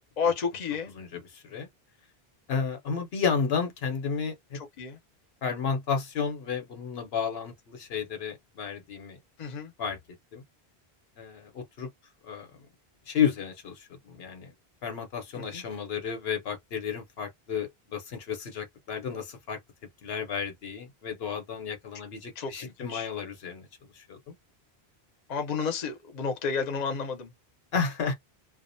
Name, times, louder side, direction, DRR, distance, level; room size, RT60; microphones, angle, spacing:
voice 1, 0.2-0.9 4.5-5.0 9.4-9.7 15.4-15.6 22.4-23.1 25.3-27.3, left 5 dB, 50° left, 0.7 m, -31 dB
voice 2, 1.3-1.7 2.5-4.6 5.4-9.2 9.8-10.0 10.3-10.4 11.2-11.9 12.3-12.5 13.1-14.5 14.8-19.6 20.0-23.7 24.1-24.3 27.7-28.1, left 6 dB, 75° left, 1.0 m, -32 dB
2.4 x 2.1 x 2.5 m
omnidirectional pair, 1.0 m